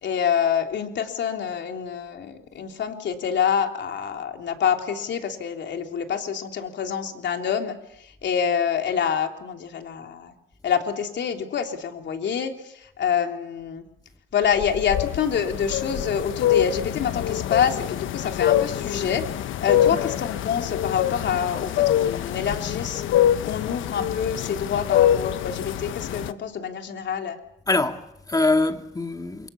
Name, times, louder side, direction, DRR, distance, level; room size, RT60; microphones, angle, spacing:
voice 1, 0.0-10.3 10.6-13.8 14.3-19.3 19.6-23.0 23.4-27.4, left 7 dB, 65° left, 3.5 m, -26 dB
sound 1, 14.6-26.3, left 11 dB, 80° left, 1.1 m, -25 dB
voice 2, 27.7-29.5, left 2 dB, 20° left, 2.5 m, -24 dB
28.0 x 23.5 x 7.2 m
cardioid pair, 90°, 20 cm